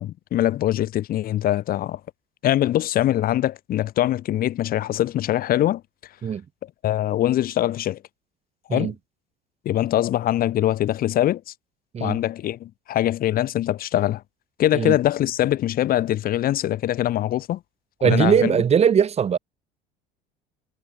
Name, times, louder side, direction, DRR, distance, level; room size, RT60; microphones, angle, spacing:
voice 1, 0.0-2.0 2.4-5.8 6.8-8.0 8.7-8.9 9.7-11.4 12.0-14.2 14.6-17.6 18.0-18.6, left 13 dB, 55° left, 2.2 m, -23 dB
voice 2, 18.0-19.4, right 7 dB, 35° right, 2.2 m, -20 dB
supercardioid pair, 95°, 18 cm